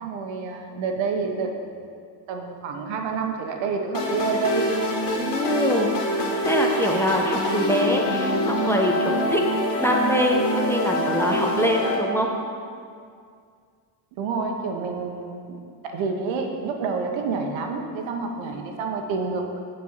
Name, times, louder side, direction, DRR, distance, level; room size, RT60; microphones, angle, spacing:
voice 1, 0.0-1.8 2.3-4.7 14.2-15.6 15.8-19.6, right 4 dB, 70° right, 3 dB, 1.2 m, -28 dB
sound 1, 3.9-11.9, left 1 dB, 55° left, 2.3 m, -25 dB
voice 2, 5.2-9.5 9.8-12.3 18.5-18.6, equal, 5° left, 0 dB, 1.1 m, -24 dB
9.2 x 4.6 x 7.3 m, 2.2 s
supercardioid pair, 90°, 47 cm